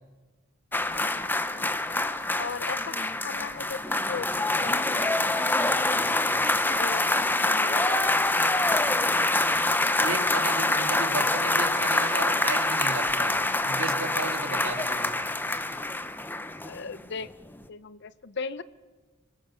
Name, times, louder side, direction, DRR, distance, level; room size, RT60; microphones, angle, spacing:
voice 1, 0.7-1.7 2.4-5.1 5.6-5.7 6.7-7.1 7.4-8.3 16.7-17.3 17.7-18.6, left 5 dB, 60° left, 17 dB, 0.6 m, -38 dB
sound 1, 0.7-17.0 17.3-17.4, left 2 dB, 10° left, 0.7 m, -25 dB
voice 2, 10.0-15.1, right 3 dB, 70° right, 6 dB, 2.1 m, -34 dB
24.5 x 17.0 x 7.1 m, 1.4 s
head